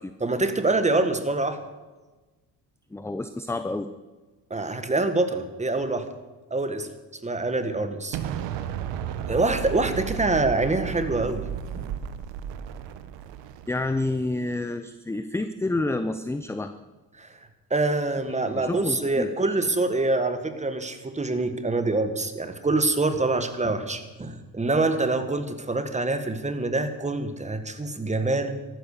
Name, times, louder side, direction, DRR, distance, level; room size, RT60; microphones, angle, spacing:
voice 1, 0.2-1.6 4.5-6.1 6.5-6.9 7.2-8.2 9.3-11.4 11.8-11.9 17.2-17.3 17.7-28.5, right 2 dB, 15° right, 9 dB, 1.7 m, -25 dB
voice 2, 2.9-3.9 13.7-16.8 18.5-19.5, left 2 dB, 5° left, 10 dB, 0.6 m, -29 dB
Explosion, 8.1-14.1, right 9 dB, 80° right, 1.3 m, -34 dB
14.0 x 12.5 x 6.7 m, 1.2 s
cardioid pair, 100°, 43 cm